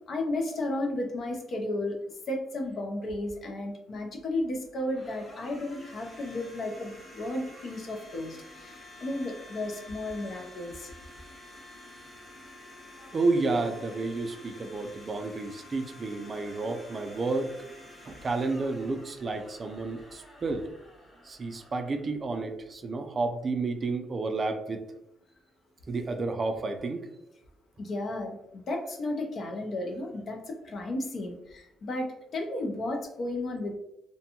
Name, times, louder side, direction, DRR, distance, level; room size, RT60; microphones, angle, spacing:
voice 1, 0.1-2.0 2.3-10.9 27.8-33.7, left 1 dB, 55° left, 3 dB, 0.6 m, -33 dB
Domestic sounds home sounds, 3.9-22.8, left 1 dB, 15° left, 1.0 m, -50 dB
voice 2, 13.0-17.6 18.0-20.6 21.2-24.8 25.9-27.1, right 3 dB, 40° right, 7 dB, 0.3 m, -31 dB
2.6 x 2.2 x 2.8 m, 0.81 s
cardioid pair, 90°, 0 cm